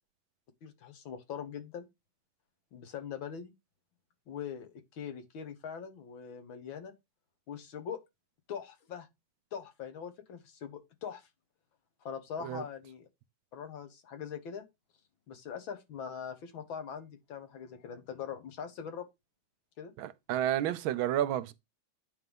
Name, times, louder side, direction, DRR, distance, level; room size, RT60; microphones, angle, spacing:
voice 1, 0.6-1.9 2.7-3.5 4.3-6.9 7.5-8.0 8.5-9.1 9.5-11.3 12.1-13.1 13.5-14.6 15.3-19.1 19.8-19.9, left 7 dB, 75° left, 2.0 m, -42 dB
voice 2, 20.0-21.5, right 11 dB, 80° right, 1.4 m, -31 dB
9.2 x 3.5 x 5.4 m
omnidirectional pair, 2.2 m